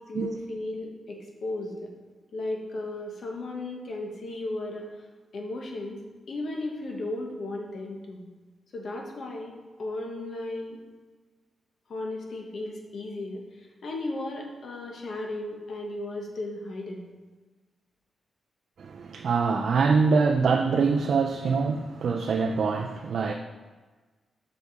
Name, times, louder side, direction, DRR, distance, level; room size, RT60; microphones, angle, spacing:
voice 1, 0.1-1.9 2.3-4.9 5.3-6.0 6.3-8.3 8.7-10.8 11.9-17.0, left 2 dB, 55° left, 1.1 m, -35 dB
voice 2, 18.8-23.3, right 5 dB, 60° right, 0.4 m, -24 dB
7.1 x 4.8 x 4.0 m
wide cardioid pair, 145°, 0 cm